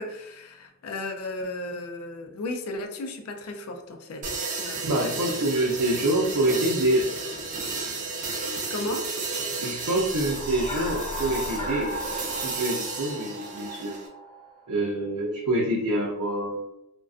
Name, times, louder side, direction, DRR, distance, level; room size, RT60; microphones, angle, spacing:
voice 1, 0.0-5.1 8.7-9.1, left 2 dB, 80° left, 5 dB, 0.4 m, -35 dB
sound 1, 4.2-14.1, right 3 dB, 35° right, 0.4 m, -33 dB
voice 2, 4.8-7.1 9.6-11.9 12.4-13.9 14.7-16.6, right 1 dB, 85° right, -4 dB, 0.5 m, -26 dB
sound 2, 9.9-14.6, equal, 35° left, 0.8 m, -35 dB
2.3 x 2.2 x 2.4 m, 0.85 s
head